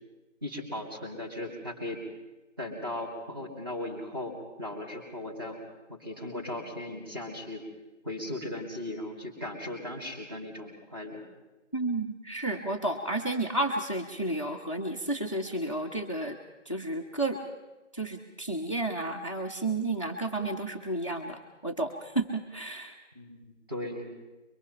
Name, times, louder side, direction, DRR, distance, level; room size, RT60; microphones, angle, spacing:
voice 1, 0.4-2.0 2.6-5.6 5.9-7.6 8.0-11.2 23.1-24.1, left 1 dB, 20° right, -1 dB, 2.3 m, -37 dB
voice 2, 11.7-16.4 16.7-17.4 17.9-22.9, right 2 dB, 25° left, 3 dB, 0.8 m, -32 dB
23.5 x 22.0 x 5.6 m, 1.1 s
figure-of-eight pair, 175°, 38 cm